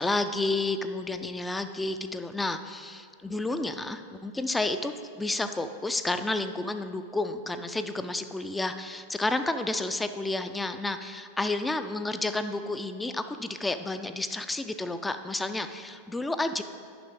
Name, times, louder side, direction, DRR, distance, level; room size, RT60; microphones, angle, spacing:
voice 1, 0.0-16.6, left 2 dB, 10° left, 9 dB, 0.3 m, -31 dB
9.4 x 5.8 x 3.6 m, 2.1 s
figure-of-eight pair, 90°, 0 cm